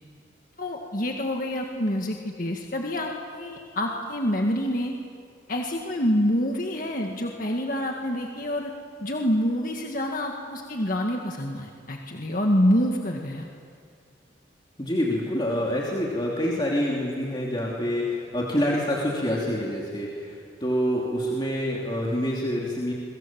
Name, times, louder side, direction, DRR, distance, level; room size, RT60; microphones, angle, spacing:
voice 1, 0.6-4.9 5.5-8.7 9.0-13.5, equal, 45° left, 1 dB, 1.9 m, -27 dB
voice 2, 14.8-22.9, equal, 25° left, -3 dB, 3.0 m, -27 dB
30.0 x 24.0 x 7.6 m, 2.2 s
head